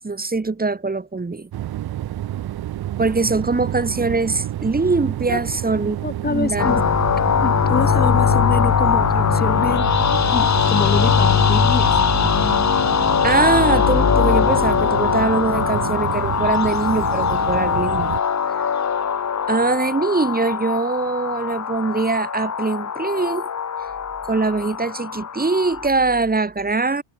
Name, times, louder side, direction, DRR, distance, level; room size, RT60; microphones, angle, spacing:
voice 1, 0.0-1.5 3.0-6.0 6.2-6.8 13.2-18.2 19.5-23.5 24.3-27.0, right 3 dB, 20° right, 3.9 m, -22 dB
sound 1, 1.5-18.2, right 13 dB, 50° right, 1.2 m, -29 dB
voice 2, 6.0-6.9 7.4-9.9 10.3-12.0, left 4 dB, 20° left, 3.2 m, -26 dB
sound 2, 6.6-25.9, left 7 dB, 35° left, 3.2 m, -20 dB
cardioid pair, 105°, 48 cm